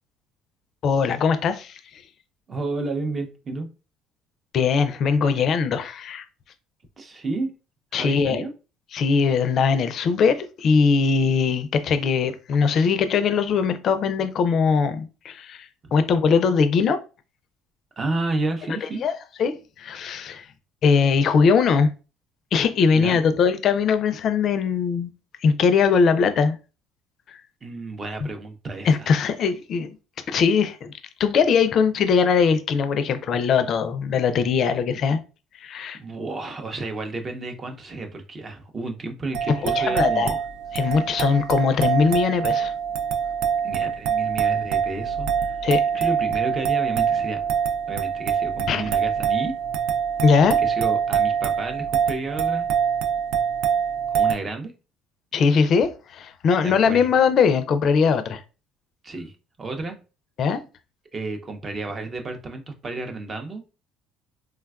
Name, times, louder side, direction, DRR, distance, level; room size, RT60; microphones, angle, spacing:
voice 1, 0.8-1.8 4.5-6.2 7.9-8.4 8.9-17.0 19.0-19.1 19.4-20.4 20.8-21.9 22.5-25.1 25.4-26.6 28.8-29.9 30.3-30.9 31.2-35.2 35.6-36.0 39.5-40.4 40.7-42.7 45.6-45.8 48.7-48.8 50.2-50.6 55.3-58.4 60.4-60.6, left 5 dB, 50° left, 0.4 m, -21 dB
voice 2, 2.5-3.7 7.0-7.5 7.9-8.5 15.8-15.9 18.0-19.0 22.9-23.2 27.6-29.1 35.9-40.4 43.6-45.7 45.9-47.4 47.9-49.5 50.6-52.7 54.1-54.7 56.6-57.1 59.0-59.3 59.6-60.0 61.1-63.6, right 3 dB, 30° right, 0.6 m, -31 dB
sound 1, 39.3-54.3, right 7 dB, 75° right, 0.3 m, -24 dB
3.3 x 2.2 x 2.3 m
supercardioid pair, 100°, 0 cm